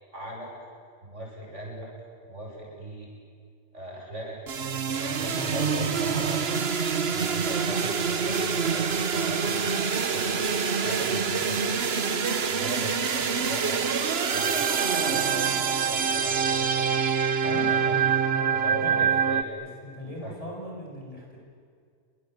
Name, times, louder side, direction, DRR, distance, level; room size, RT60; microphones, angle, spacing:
voice 1, 0.1-0.5 1.0-1.9 2.2-3.1 3.7-6.4 7.1-10.3 10.8-12.0 12.5-13.9 14.2-17.0 17.3-18.0 18.5-19.6 20.0-20.4, right 1 dB, 80° right, -2 dB, 8.4 m, -39 dB
sound 1, 4.5-19.4, right 6 dB, 60° right, 1.4 m, -26 dB
voice 2, 5.1-6.6 17.5-19.1 19.8-21.4, left 1 dB, 30° left, -2 dB, 7.4 m, -39 dB
30.0 x 24.0 x 8.1 m, 2.1 s
omnidirectional pair, 1.2 m